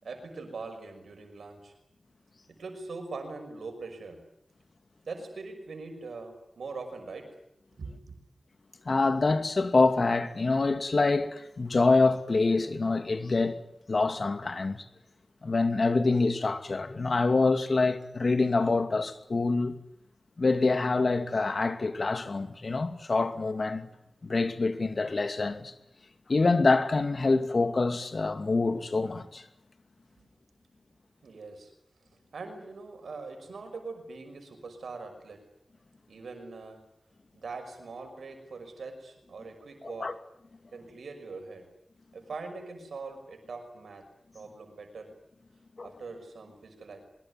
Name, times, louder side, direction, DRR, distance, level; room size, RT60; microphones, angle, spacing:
voice 1, 0.0-1.7 2.5-4.2 5.0-7.4 7.8-8.2 30.2-30.3 31.2-31.7 32.3-35.4 36.1-36.8 37.3-40.2 40.7-41.7 42.1-44.1 44.3-45.2 45.8-47.1, right 3 dB, 90° right, 6.0 m, -42 dB
voice 2, 8.9-13.6 13.9-14.8 15.4-19.7 20.4-23.9 24.2-25.7 26.3-29.4 39.8-40.1 45.8-45.9, left 3 dB, 60° left, 2.6 m, -26 dB
23.5 x 22.0 x 9.8 m
cardioid pair, 40°, 0 cm